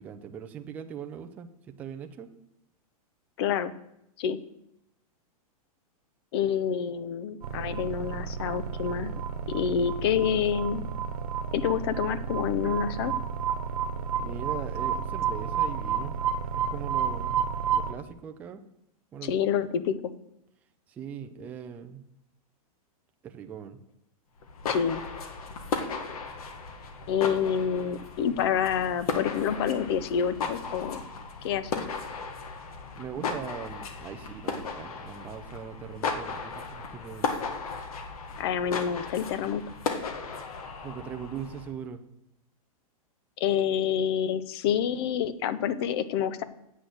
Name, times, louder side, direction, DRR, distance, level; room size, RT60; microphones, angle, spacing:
voice 1, 0.0-2.3 14.2-16.2 16.5-17.4 17.7-18.6 19.1-19.3 20.9-22.0 23.2-23.8 32.5-37.3 40.8-42.0, right 8 dB, 10° right, 6 dB, 0.3 m, -40 dB
voice 2, 3.4-3.7 4.2-4.4 6.3-9.1 9.5-10.9 11.5-13.1 19.2-19.9 24.7-25.0 27.1-31.0 31.4-31.8 38.4-39.7 43.4-46.4, left 8 dB, 40° left, 14 dB, 0.7 m, -28 dB
sound 1, 7.4-17.9, right 7 dB, 80° right, 1.2 m, -31 dB
sound 2, 24.4-41.7, left 5 dB, 75° left, 1.6 m, -36 dB
8.2 x 6.3 x 7.7 m, 0.81 s
supercardioid pair, 165°, 19 cm